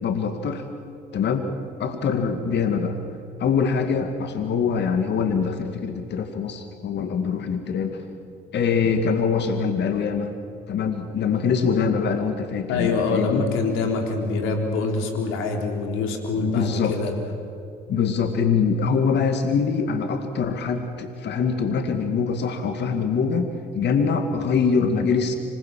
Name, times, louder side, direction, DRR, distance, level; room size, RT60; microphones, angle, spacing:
voice 1, 0.0-0.7 1.1-1.5 1.8-3.0 3.4-8.0 8.5-10.3 10.7-13.5 16.4-17.0 17.9-25.3, left 6 dB, 55° left, 7 dB, 2.0 m, -24 dB
voice 2, 12.7-17.1, left 4 dB, 75° left, 4 dB, 3.7 m, -25 dB
26.0 x 20.5 x 7.6 m, 2.6 s
hypercardioid pair, 55°, 21 cm